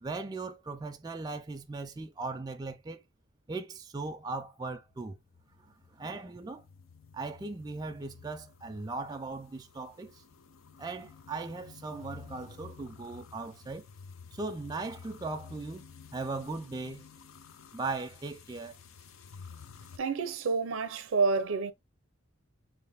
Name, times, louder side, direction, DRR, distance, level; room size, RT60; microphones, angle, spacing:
voice 1, 0.0-3.0 3.5-5.2 6.0-6.6 7.1-10.2 10.8-13.9 14.3-15.9 16.1-17.1 17.7-18.7, right 3 dB, 20° right, 0.3 m, -38 dB
sound 1, 4.8-20.0, left 6 dB, 85° left, 0.5 m, -52 dB
voice 2, 20.0-21.7, right 4 dB, 85° right, 0.5 m, -29 dB
3.2 x 2.5 x 3.4 m
head